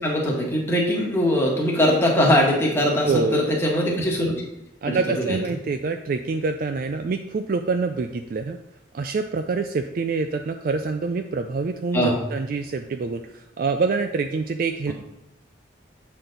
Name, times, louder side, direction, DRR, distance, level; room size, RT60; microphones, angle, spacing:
voice 1, 0.0-4.3 4.8-5.4 11.9-12.2, equal, 15° left, -3 dB, 1.2 m, -21 dB
voice 2, 3.1-3.4 4.8-8.6 8.9-14.9, right 4 dB, 50° right, 6 dB, 0.3 m, -26 dB
7.8 x 4.2 x 3.9 m, 0.90 s
head